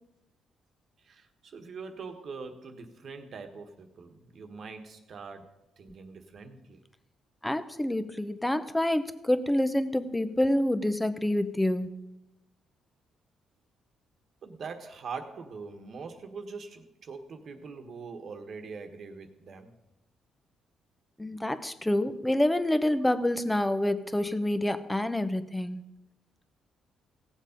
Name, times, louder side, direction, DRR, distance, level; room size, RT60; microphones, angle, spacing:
voice 1, 1.0-6.8 14.4-19.7, right 4 dB, 55° right, 6 dB, 1.4 m, -43 dB
voice 2, 7.4-11.9 21.2-25.8, left 1 dB, 10° left, 11 dB, 0.8 m, -27 dB
17.0 x 7.2 x 5.2 m, 0.93 s
cardioid pair, 90°, 0 cm